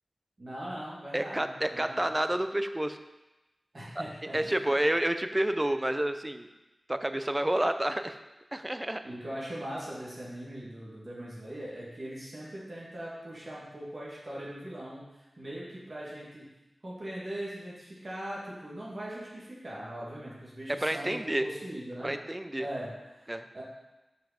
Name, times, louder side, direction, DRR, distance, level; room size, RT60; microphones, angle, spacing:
voice 1, 0.4-2.2 3.7-4.7 9.0-15.1 15.4-16.5 16.8-22.2 22.6-23.6, right 1 dB, 45° right, -6 dB, 2.1 m, -40 dB
voice 2, 1.1-3.0 4.0-4.1 4.3-6.5 6.9-8.2 8.5-9.0 20.7-21.5 22.0-22.7 23.3-23.4, right 1 dB, 20° right, 9 dB, 0.5 m, -29 dB
5.8 x 5.3 x 5.1 m, 1.0 s
wide cardioid pair, 70°, 0 cm